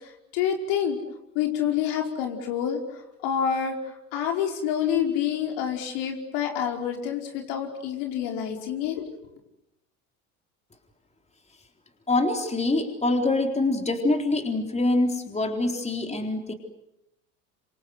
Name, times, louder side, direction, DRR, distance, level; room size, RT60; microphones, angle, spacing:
voice 1, 0.3-1.0 1.4-2.8 3.2-3.8 4.1-9.0, left 8 dB, 65° left, 3 dB, 5.2 m, -27 dB
voice 2, 12.1-16.5, left 2 dB, 15° left, 4 dB, 3.9 m, -25 dB
26.5 x 26.5 x 7.9 m, 0.88 s
hypercardioid pair, 90°, 43 cm